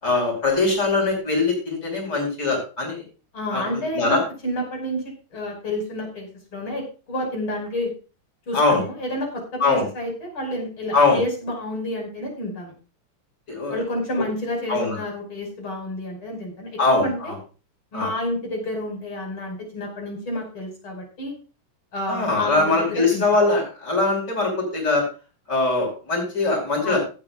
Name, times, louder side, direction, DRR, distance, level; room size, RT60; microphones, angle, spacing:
voice 1, 0.0-3.0 3.5-4.2 8.5-8.8 9.6-9.8 10.9-11.2 13.5-13.8 14.7-15.0 16.8-17.3 17.9-18.1 22.1-25.0 25.5-27.0, left 3 dB, 55° left, 1 dB, 6.1 m, -22 dB
voice 2, 3.3-7.9 8.5-12.7 13.7-17.3 17.9-21.4 21.9-23.2 26.8-27.0, left 1 dB, 90° left, 0 dB, 6.6 m, -30 dB
17.0 x 12.5 x 2.5 m, 0.34 s
omnidirectional pair, 2.2 m